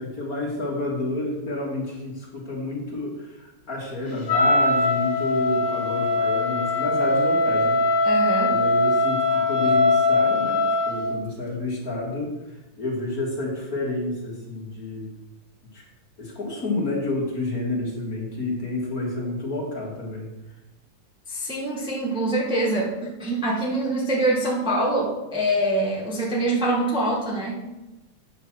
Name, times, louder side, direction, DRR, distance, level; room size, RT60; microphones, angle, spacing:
voice 1, 0.0-7.8 8.4-12.3 12.8-15.1 15.7-15.8 16.2-20.3, left 2 dB, 45° left, -3 dB, 2.5 m, -29 dB
Wind instrument woodwind instrument, 4.3-11.1, left 2 dB, 65° left, 2.1 m, -21 dB
voice 2, 8.0-8.6 21.3-27.6, right 1 dB, 5° right, -4 dB, 1.5 m, -24 dB
8.9 x 5.7 x 6.1 m, 1.0 s
omnidirectional pair, 2.3 m